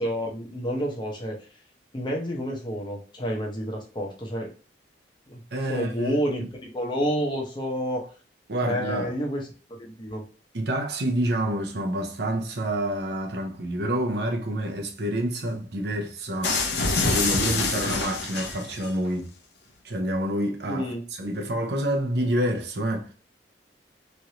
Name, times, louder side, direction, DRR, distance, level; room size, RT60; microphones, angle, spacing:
voice 1, 0.0-1.4 1.9-4.5 5.3-5.4 5.7-6.4 6.7-8.1 8.6-9.4 9.8-10.2 20.7-21.0, equal, 25° left, 0.7 m, -29 dB
voice 2, 5.5-6.5 8.5-9.1 10.5-16.7 17.0-19.3 19.8-20.9 21.2-23.1, right 1 dB, 65° right, 0.7 m, -28 dB
sound 1, 16.4-18.9, left 3 dB, 70° left, 0.7 m, -26 dB
3.1 x 2.6 x 2.8 m
head